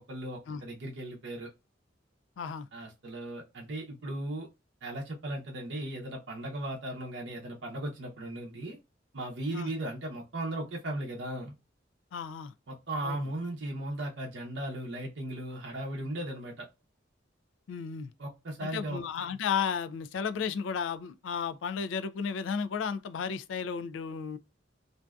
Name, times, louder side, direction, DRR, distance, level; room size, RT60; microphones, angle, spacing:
voice 1, 0.1-1.5 2.7-4.5 4.8-8.8 9.1-11.5 12.7-16.7 18.2-19.0, right 1 dB, 65° right, 0.6 m, -37 dB
voice 2, 2.4-2.7 9.5-9.7 12.1-12.5 13.0-13.2 17.7-18.1 18.6-24.4, left 6 dB, 85° left, 0.3 m, -33 dB
2.6 x 2.2 x 2.2 m
head